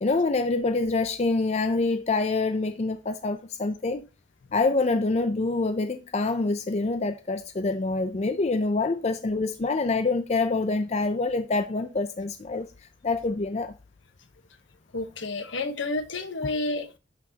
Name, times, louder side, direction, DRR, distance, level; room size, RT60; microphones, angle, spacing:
voice 1, 0.0-4.1 4.5-12.7 13.0-13.7, left 3 dB, 35° left, 0.4 m, -26 dB
voice 2, 14.9-17.0, left 2 dB, 70° left, 1.1 m, -30 dB
11.0 x 6.0 x 2.8 m
head